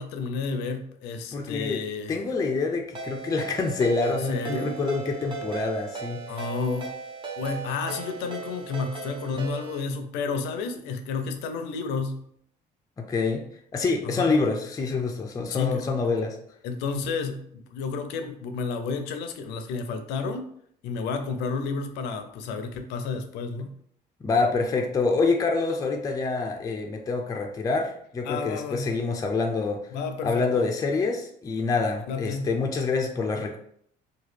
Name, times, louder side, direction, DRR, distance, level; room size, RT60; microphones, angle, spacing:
voice 1, 0.0-2.2 4.1-4.8 6.3-6.9 7.4-12.2 14.2-14.4 15.5-15.8 16.6-20.5 20.8-23.8 28.2-28.9 29.9-30.6 32.1-32.5, left 4 dB, 90° left, 7 dB, 0.5 m, -31 dB
voice 2, 1.3-1.8 2.1-6.2 13.0-13.4 13.7-16.4 24.2-29.8 30.2-33.6, left 4 dB, 20° left, 2 dB, 0.4 m, -26 dB
Ringtone, 2.9-9.8, right 5 dB, 30° right, 0.7 m, -37 dB
2.9 x 2.3 x 3.2 m, 0.67 s
cardioid pair, 110°, 17 cm